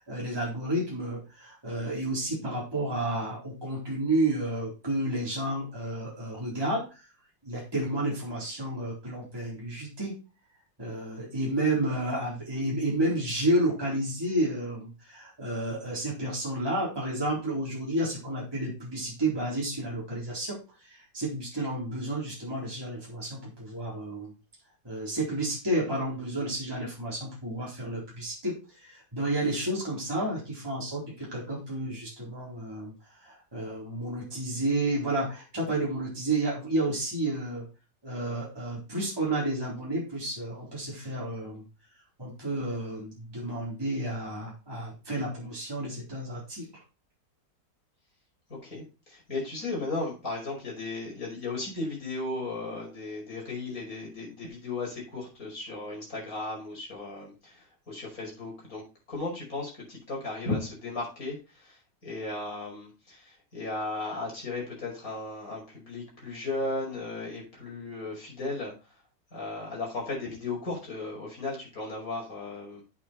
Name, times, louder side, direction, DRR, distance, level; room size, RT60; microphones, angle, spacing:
voice 1, 0.0-7.1 7.4-10.1 10.8-24.3 24.8-32.9 33.2-37.6 38.0-41.6 42.2-46.7, right 1 dB, 15° right, -5 dB, 3.9 m, -31 dB
voice 2, 48.6-58.8 59.1-68.7 69.3-72.8, left 2 dB, 50° left, -3 dB, 5.9 m, -35 dB
8.6 x 8.3 x 4.4 m, 0.31 s
omnidirectional pair, 1.9 m